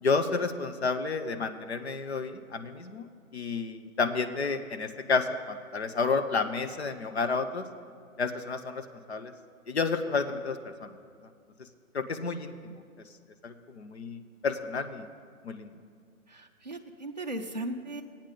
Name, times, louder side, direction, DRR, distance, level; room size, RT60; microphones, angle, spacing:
voice 1, 0.0-3.1 3.3-7.7 8.2-9.3 9.7-10.9 11.2-11.3 11.9-12.8 13.4-15.1 15.4-15.7, left 4 dB, 50° left, 9 dB, 0.7 m, -31 dB
voice 2, 16.3-18.0, right 1 dB, 35° right, 0 dB, 0.4 m, -37 dB
16.0 x 8.8 x 3.8 m, 2.1 s
hypercardioid pair, 175°, 43 cm